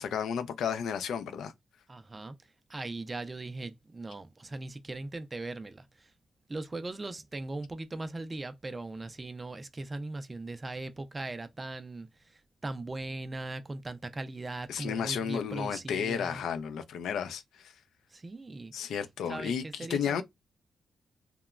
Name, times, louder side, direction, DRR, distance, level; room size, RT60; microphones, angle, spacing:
voice 1, 0.0-1.5 14.7-17.7 18.7-20.2, left 7 dB, 85° left, 0.4 m, -33 dB
voice 2, 1.9-2.3 2.7-5.8 6.5-12.1 12.6-16.4 18.1-18.7 19.3-20.2, right 2 dB, 20° right, 0.3 m, -39 dB
2.9 x 2.1 x 2.3 m
cardioid pair, 130°, 0 cm